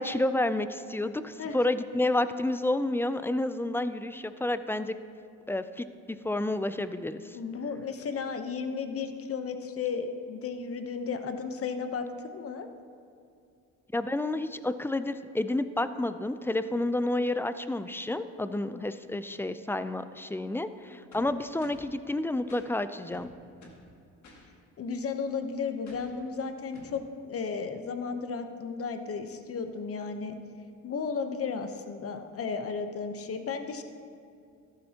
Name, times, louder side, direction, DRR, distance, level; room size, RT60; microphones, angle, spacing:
voice 1, 0.0-5.0 5.5-7.4 13.9-23.3, left 1 dB, 10° left, 12 dB, 0.4 m, -30 dB
voice 2, 7.3-12.1 12.3-12.7 18.6-18.8 24.8-30.4 30.8-33.8, left 5 dB, 50° left, 8 dB, 0.9 m, -34 dB
sound 1, 21.1-21.9 22.5-22.7 23.1-23.9 24.2-24.5 25.9-26.2 26.7-27.0, left 1 dB, 65° left, 2.0 m, -52 dB
13.5 x 11.5 x 2.9 m, 2.5 s
cardioid pair, 90°, 30 cm